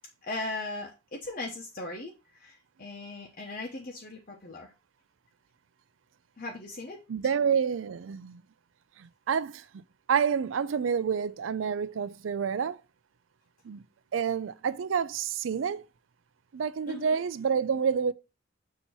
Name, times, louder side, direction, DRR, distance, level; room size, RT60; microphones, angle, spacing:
voice 1, 0.2-2.1 2.4-4.7 6.4-7.0 16.9-17.2, left 2 dB, 45° left, 0.9 m, -38 dB
voice 2, 7.1-8.4 9.0-9.8 10.1-12.8 13.6-13.8 14.1-15.8 16.5-18.1, right 6 dB, 85° right, 0.4 m, -28 dB
6.9 x 2.9 x 5.5 m
head